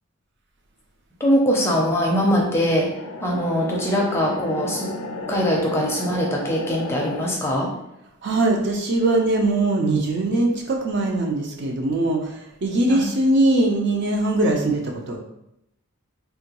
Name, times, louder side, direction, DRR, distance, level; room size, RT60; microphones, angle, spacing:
voice 1, 1.2-2.9 3.2-4.9 5.3-7.7 12.9-13.1, equal, 10° left, -1 dB, 0.5 m, -22 dB
sound 1, 2.7-7.4, left 2 dB, 70° left, 0.4 m, -33 dB
voice 2, 8.2-15.2, right 2 dB, 50° right, 1 dB, 0.5 m, -21 dB
3.6 x 2.2 x 2.9 m, 0.81 s
head